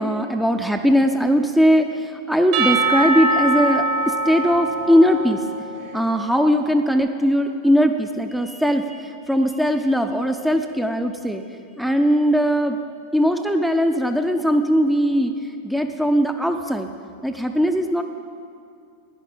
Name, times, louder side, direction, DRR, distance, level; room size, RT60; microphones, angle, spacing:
voice 1, 0.0-5.5 5.9-11.4 11.8-12.8 13.1-16.9 17.2-18.0, equal, ahead, 6 dB, 0.6 m, -20 dB
Percussion / Church bell, 2.5-6.2, right 2 dB, 50° right, 2.0 m, -23 dB
15.5 x 10.5 x 5.5 m, 2.5 s
figure-of-eight pair, 90°, 0 cm